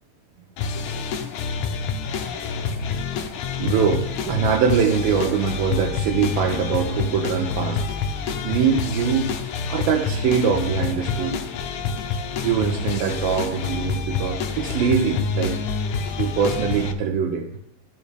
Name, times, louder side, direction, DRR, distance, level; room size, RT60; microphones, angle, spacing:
sound 1, 0.6-16.9, left 5 dB, 80° left, 1.8 m, -27 dB
voice 1, 3.6-8.0 8.3-9.3 9.7-11.4 12.4-15.6 16.2-17.5, right 6 dB, 80° right, 1 dB, 2.5 m, -23 dB
14.0 x 5.5 x 3.3 m, 0.78 s
omnidirectional pair, 4.4 m